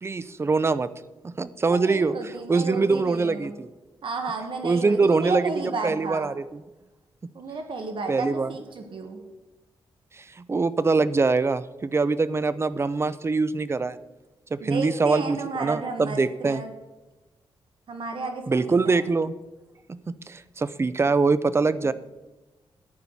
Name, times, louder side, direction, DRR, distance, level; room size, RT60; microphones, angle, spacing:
voice 1, 0.0-0.9 1.2-3.7 4.6-6.6 8.1-8.5 10.1-14.0 14.5-16.6 18.5-19.3 19.9-21.9, right 4 dB, 25° right, 15 dB, 0.5 m, -24 dB
voice 2, 1.7-3.5 4.0-6.3 7.3-9.2 14.6-16.7 17.9-19.0, right 3 dB, 65° right, 5 dB, 1.5 m, -32 dB
14.0 x 10.0 x 4.1 m, 1.1 s
wide cardioid pair, 105°, 10 cm